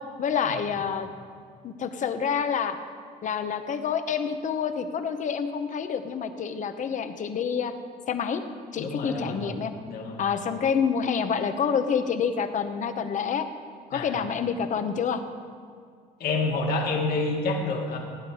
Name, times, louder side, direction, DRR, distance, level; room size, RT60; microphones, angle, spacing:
voice 1, 0.2-1.1 1.6-2.8 3.2-7.7 8.1-8.4 8.7-9.7 10.2-13.5 13.9-15.2, left 7 dB, 45° left, 9 dB, 1.0 m, -27 dB
voice 2, 8.8-9.4 9.9-10.2 13.9-14.1 16.2-18.0, left 3 dB, 65° left, 0 dB, 2.1 m, -28 dB
17.5 x 9.1 x 4.9 m, 2.2 s
cardioid pair, 110°, 17 cm